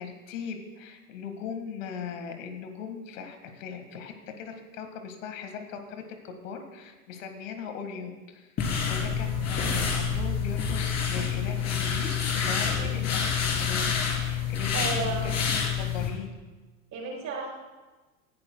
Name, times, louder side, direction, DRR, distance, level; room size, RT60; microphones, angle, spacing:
voice 1, 0.0-8.5 8.8-16.5, left 6 dB, 70° left, 6 dB, 1.9 m, -39 dB
sound 1, 8.6-16.1, left 6 dB, 40° left, 3.3 m, -27 dB
voice 2, 12.7-13.1 14.7-15.3 16.9-17.5, right 4 dB, 45° right, -2 dB, 4.3 m, -33 dB
18.0 x 11.0 x 2.3 m, 1.2 s
hypercardioid pair, 90°, 40 cm